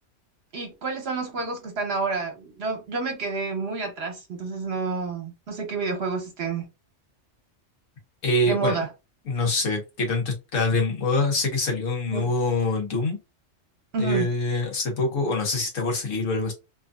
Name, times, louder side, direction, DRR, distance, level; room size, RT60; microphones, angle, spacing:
voice 1, 0.5-6.6 8.5-8.9 12.1-12.3 13.9-14.3, right 4 dB, 55° right, 1.1 m, -29 dB
voice 2, 8.2-8.8 9.3-13.2 14.0-16.5, left 2 dB, 85° left, 1.4 m, -25 dB
3.1 x 2.6 x 2.3 m
omnidirectional pair, 1.3 m